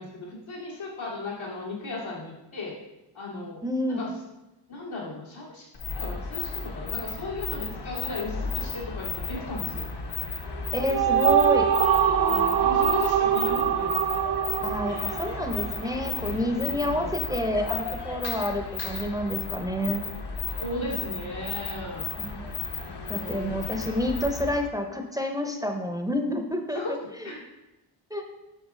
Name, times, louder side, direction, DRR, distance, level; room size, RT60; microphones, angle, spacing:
voice 1, 0.0-2.7 3.1-3.6 3.9-4.1 4.7-5.7 6.0-9.9 12.3-14.0 16.6-17.1 20.6-22.1 22.8-23.9 26.7-26.9 27.2-27.4, left 2 dB, 85° left, -5 dB, 2.5 m, -36 dB
voice 2, 3.6-4.0 10.7-11.7 14.6-20.0 22.2-22.4 23.1-27.3 28.1-28.3, equal, 10° right, 4 dB, 0.6 m, -29 dB
sound 1, 5.7-24.7, left 5 dB, 60° left, 1.1 m, -34 dB
sound 2, 10.5-16.0, right 9 dB, 50° right, 0.6 m, -24 dB
8.2 x 5.9 x 3.7 m, 0.97 s
wide cardioid pair, 130°, 46 cm